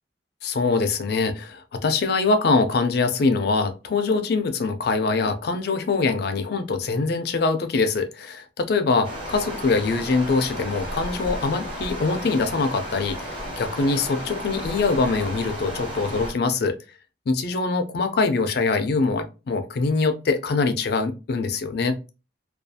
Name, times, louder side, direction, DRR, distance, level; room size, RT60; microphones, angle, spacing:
voice 1, 0.4-16.8 17.3-22.0, left 4 dB, 60° left, 0.4 m, -23 dB
Stream, 9.0-16.3, equal, 30° right, 1.0 m, -33 dB
2.4 x 2.3 x 2.6 m
head